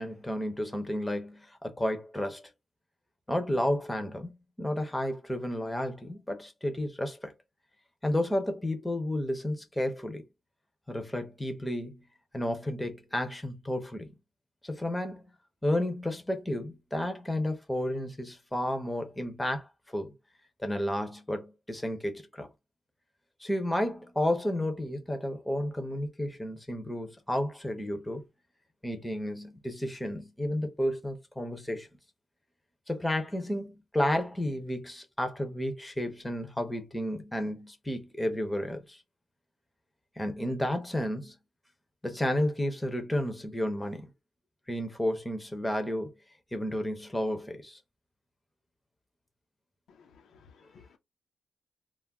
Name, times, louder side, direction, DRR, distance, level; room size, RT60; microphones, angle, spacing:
voice 1, 0.0-2.4 3.3-7.3 8.0-10.2 10.9-12.0 12.3-14.1 14.6-15.2 15.6-20.1 20.6-22.5 23.4-28.2 28.8-31.9 32.9-39.0 40.2-41.4 42.0-44.1 44.7-46.1 46.5-47.8, left 1 dB, 10° left, 0.5 m, -32 dB
voice 2, 50.0-51.0, left 6 dB, 85° left, 0.5 m, -57 dB
2.3 x 2.1 x 3.4 m
wide cardioid pair, 160°, 0 cm